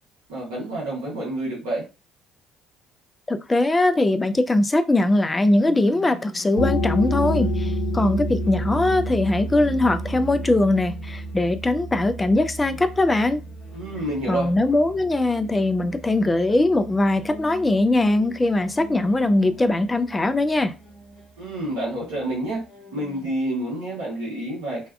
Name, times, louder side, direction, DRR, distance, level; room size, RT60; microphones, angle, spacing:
voice 1, 0.3-1.8 13.7-14.5 21.4-22.6 22.9-24.9, right 1 dB, 80° right, 1.0 m, -28 dB
voice 2, 3.3-13.4 14.3-20.7, left 2 dB, 20° left, 0.3 m, -21 dB
sound 1, 5.3-23.3, left 1 dB, 50° left, 1.0 m, -45 dB
sound 2, 6.6-17.9, equal, 80° left, 0.5 m, -30 dB
2.6 x 2.2 x 2.2 m
hypercardioid pair, 55°, 0 cm